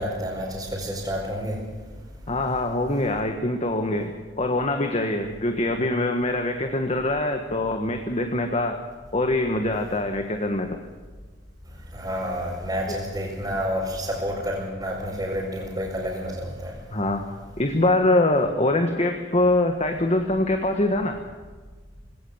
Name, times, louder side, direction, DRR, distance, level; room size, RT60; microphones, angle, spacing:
voice 1, 0.0-1.6 11.9-16.7, equal, 20° right, -7 dB, 5.1 m, -29 dB
voice 2, 2.3-4.1 4.4-8.8 9.1-10.7 16.9-17.3 17.6-21.2, left 2 dB, 35° left, 5 dB, 1.6 m, -23 dB
19.5 x 17.5 x 8.1 m, 1.4 s
head